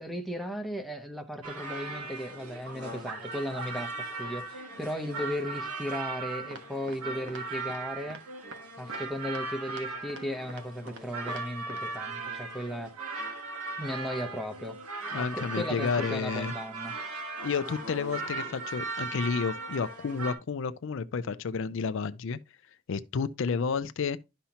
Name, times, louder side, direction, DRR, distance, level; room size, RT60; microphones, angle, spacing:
voice 1, 0.0-8.2 8.8-13.1 13.8-14.8 15.1-16.9, equal, ahead, 0.8 m, -36 dB
sound 1, 1.4-20.3, right 3 dB, 90° right, 2.3 m, -38 dB
sound 2, 6.5-7.0 7.3-7.4 7.7-7.8 8.1-8.2 8.5-8.6 8.9-9.0 9.3-9.4 9.7-9.8 10.1-10.2 10.5-11.0 11.3-11.4 11.7-11.8, right 2 dB, 55° right, 1.3 m, -44 dB
voice 2, 15.1-16.5 17.4-22.4 22.9-24.2, left 5 dB, 60° left, 0.4 m, -31 dB
11.5 x 5.6 x 2.9 m
head